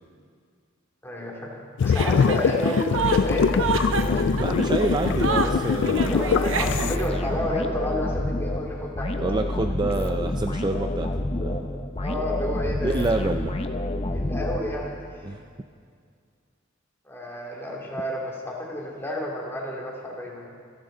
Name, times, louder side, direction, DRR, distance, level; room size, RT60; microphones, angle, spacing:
voice 1, 1.0-4.0 6.1-9.1 12.0-13.1 14.1-15.0 17.1-20.5, left 1 dB, 10° left, -3 dB, 2.6 m, -31 dB
sound 1, 1.8-7.0, left 6 dB, 60° left, 0.3 m, -23 dB
Chuckle chortle, 1.9-7.1, right 5 dB, 70° right, 0.9 m, -29 dB
sound 2, 3.0-15.1, left 1 dB, 30° left, 0.8 m, -28 dB
voice 2, 4.4-6.1 9.2-11.1 11.4-11.9 12.8-13.5 15.2-15.4, right 2 dB, 20° right, 5 dB, 0.4 m, -27 dB
27.5 x 12.0 x 3.9 m, 2.1 s
head